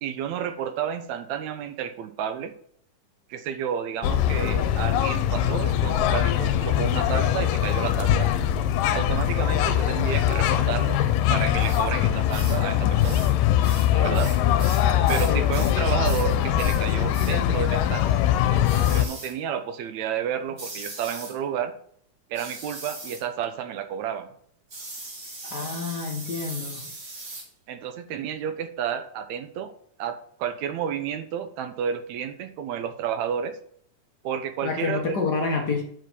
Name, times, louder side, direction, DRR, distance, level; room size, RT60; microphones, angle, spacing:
voice 1, 0.0-2.5 3.3-8.3 8.9-11.0 11.3-13.2 14.0-14.3 15.1-18.2 18.9-21.7 22.3-24.3 27.7-29.7 30.0-33.6 34.2-35.0, right 8 dB, 75° right, 9 dB, 1.8 m, -31 dB
sound 1, 4.0-19.0, left 11 dB, 85° left, 2.3 m, -22 dB
sound 2, 11.6-11.8 12.3-12.6 13.0-13.3 13.6-15.8 16.0-16.3 16.6-16.8 17.1-17.4 18.6-19.3 20.6-21.4 22.3-23.2 24.7-27.5, right 2 dB, 30° right, 2.7 m, -39 dB
voice 2, 25.5-26.8 34.6-35.8, left 4 dB, 65° left, 0 dB, 1.0 m, -28 dB
7.5 x 5.1 x 6.7 m, 0.63 s
omnidirectional pair, 3.8 m